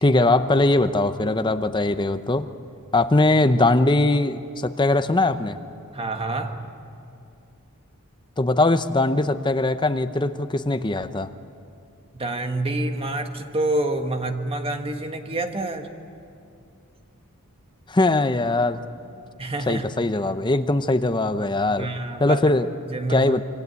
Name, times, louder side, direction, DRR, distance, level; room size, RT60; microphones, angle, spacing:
voice 1, 0.0-2.5 2.9-5.6 8.4-11.3 17.9-18.8 19.7-21.9 22.2-22.7 23.1-23.4, left 2 dB, 20° left, 10 dB, 0.7 m, -21 dB
voice 2, 5.9-6.7 12.1-15.9 19.4-19.9 21.7-22.4 22.8-23.3, right 2 dB, 25° right, 5 dB, 1.5 m, -27 dB
26.5 x 24.0 x 8.3 m, 2.6 s
head